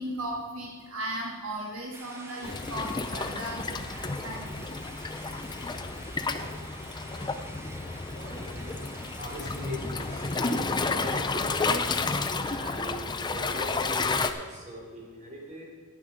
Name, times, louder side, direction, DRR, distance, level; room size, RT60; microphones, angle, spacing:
voice 1, 0.0-4.5, right 1 dB, 85° right, -1 dB, 1.5 m, -36 dB
sound 1, 1.9-10.6, right 1 dB, 15° right, 0.8 m, -47 dB
Waves surf, 2.4-14.3, left 3 dB, 20° left, 0.5 m, -31 dB
voice 2, 6.3-6.6 8.1-11.7 12.4-15.6, equal, 40° right, -3 dB, 3.1 m, -42 dB
10.5 x 8.8 x 5.1 m, 1.5 s
head